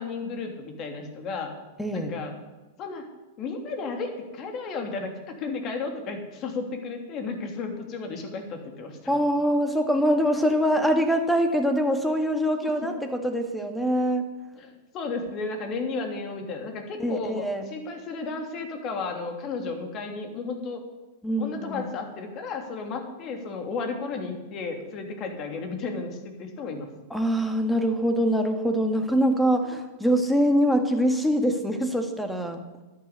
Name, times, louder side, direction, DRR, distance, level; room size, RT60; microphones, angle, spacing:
voice 1, 0.0-1.5 1.9-2.3 2.8-3.0 3.4-9.2 12.2-12.3 12.6-13.0 14.5-20.8 21.4-26.9, left 4 dB, 40° left, 4 dB, 2.9 m, -33 dB
voice 2, 1.8-2.1 9.1-14.3 17.0-17.6 21.2-21.9 27.1-32.6, equal, 5° left, 5 dB, 2.0 m, -24 dB
11.5 x 10.0 x 8.4 m, 1.1 s
hypercardioid pair, 110°, 0 cm